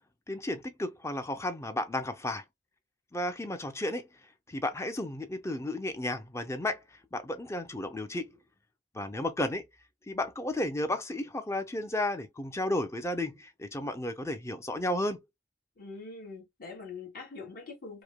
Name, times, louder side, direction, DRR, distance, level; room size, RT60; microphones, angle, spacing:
voice 1, 0.3-2.4 3.1-4.0 4.5-6.8 7.1-8.3 8.9-9.6 10.1-15.2, left 1 dB, 15° left, 0.6 m, -33 dB
voice 2, 15.8-18.0, left 4 dB, 55° left, 1.6 m, -43 dB
4.9 x 2.1 x 2.3 m
head